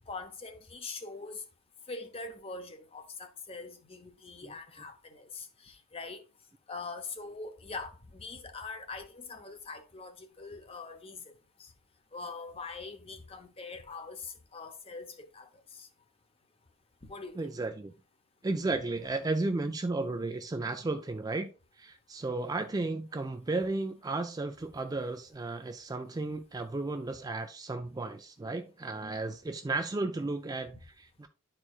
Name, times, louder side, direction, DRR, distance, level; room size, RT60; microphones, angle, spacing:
voice 1, 0.1-1.4 1.9-6.2 6.7-11.3 11.6-11.7 12.1-15.9 17.0-17.6, left 3 dB, 25° left, 0.7 m, -43 dB
voice 2, 17.4-17.9 18.4-21.5 21.8-31.3, right 2 dB, 15° right, 0.3 m, -34 dB
11.0 x 4.5 x 2.3 m
head